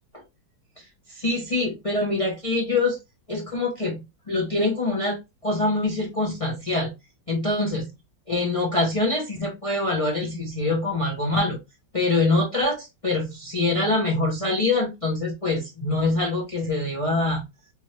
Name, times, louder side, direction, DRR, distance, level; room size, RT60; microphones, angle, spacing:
voice 1, 1.1-3.0 3.3-6.9 7.3-7.9 8.3-11.6 11.9-17.5, left 2 dB, 60° left, 0.3 m, -24 dB
3.4 x 3.2 x 3.0 m
omnidirectional pair, 2.0 m